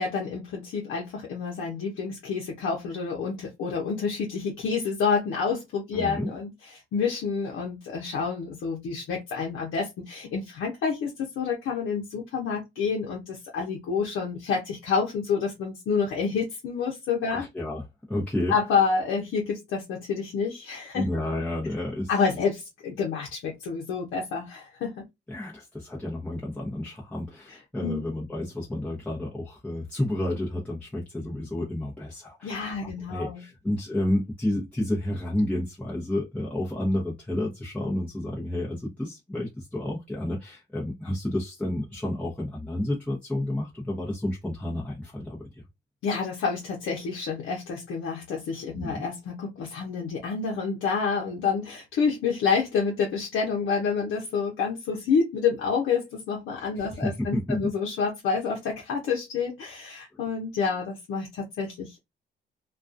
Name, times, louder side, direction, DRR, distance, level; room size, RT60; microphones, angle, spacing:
voice 1, 0.0-17.5 18.5-21.0 22.1-25.0 27.8-28.1 32.4-33.4 46.0-62.0, left 5 dB, 80° left, 0.7 m, -28 dB
voice 2, 5.9-6.3 17.3-18.5 20.9-22.1 25.3-45.6 48.7-49.0 56.6-57.7, left 1 dB, 5° left, 0.8 m, -30 dB
2.3 x 2.3 x 2.5 m
cardioid pair, 90°, 20 cm